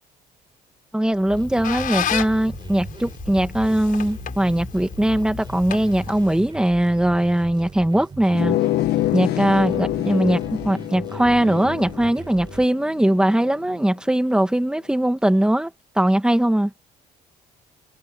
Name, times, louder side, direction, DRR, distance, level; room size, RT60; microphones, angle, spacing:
voice 1, 0.9-8.6 9.1-15.7 16.0-16.7, right 1 dB, 5° right, 2.2 m, -20 dB
Squeak, 1.1-6.6, left 9 dB, 55° left, 5.0 m, -32 dB
sound 1, 1.4-12.7, right 4 dB, 25° right, 4.2 m, -39 dB
sound 2, 8.3-13.6, left 14 dB, 75° left, 1.6 m, -26 dB
cardioid pair, 110°, 17 cm